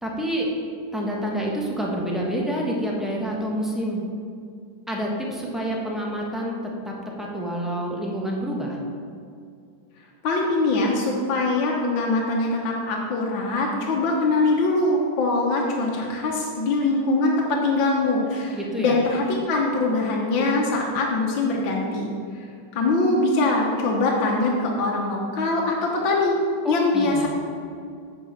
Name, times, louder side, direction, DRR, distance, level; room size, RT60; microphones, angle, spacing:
voice 1, 0.0-0.5 0.9-4.0 4.9-8.8 18.5-19.0 26.6-27.3, equal, ahead, -3 dB, 0.8 m, -28 dB
voice 2, 10.2-22.5 22.7-26.4 26.7-27.3, left 2 dB, 85° left, -1 dB, 1.7 m, -23 dB
8.7 x 4.7 x 7.1 m, 2.4 s
omnidirectional pair, 2.0 m